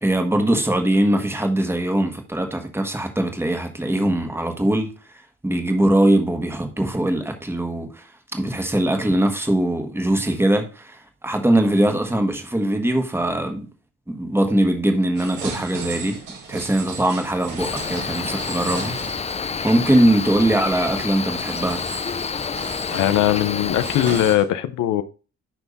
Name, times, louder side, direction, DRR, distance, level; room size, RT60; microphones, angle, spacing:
voice 1, 0.0-4.9 5.4-13.7 14.1-16.2 16.5-19.0 19.6-21.8, right 1 dB, 10° right, 1.6 m, -21 dB
sound 1, 15.1-19.7 19.9-20.0 20.8-24.4, right 5 dB, 80° right, 4.3 m, -36 dB
Cricket, 17.6-24.4, left 5 dB, 20° left, 0.5 m, -28 dB
voice 2, 22.9-25.0, left 12 dB, 85° left, 0.8 m, -20 dB
10.5 x 3.5 x 4.0 m
cardioid pair, 90°, 30 cm